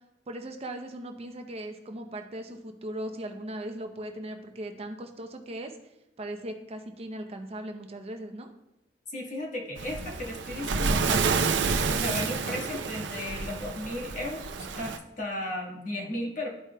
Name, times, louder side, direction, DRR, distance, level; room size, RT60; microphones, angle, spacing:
voice 1, 0.3-5.7 6.2-8.5, right 1 dB, 35° right, 5 dB, 0.6 m, -38 dB
voice 2, 9.1-16.5, left 1 dB, 45° left, -1 dB, 1.4 m, -35 dB
Waves surf, 9.8-15.0, right 4 dB, 85° right, 0.5 m, -29 dB
13.0 x 4.9 x 2.2 m, 0.90 s
head